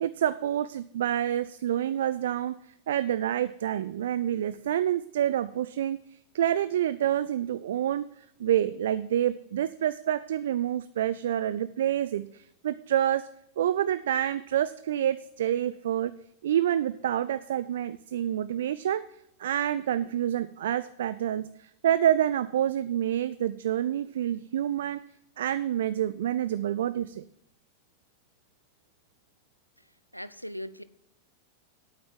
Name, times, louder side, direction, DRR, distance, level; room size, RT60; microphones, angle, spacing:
voice 1, 0.0-2.5 2.9-6.0 6.3-8.1 8.4-13.3 13.6-16.2 16.4-19.0 19.4-25.0 25.4-27.2, right 11 dB, 60° right, 15 dB, 0.3 m, -28 dB
voice 2, 30.1-30.8, equal, 90° left, 15 dB, 0.5 m, -38 dB
8.7 x 8.6 x 5.9 m, 0.77 s
figure-of-eight pair, 90°, 0 cm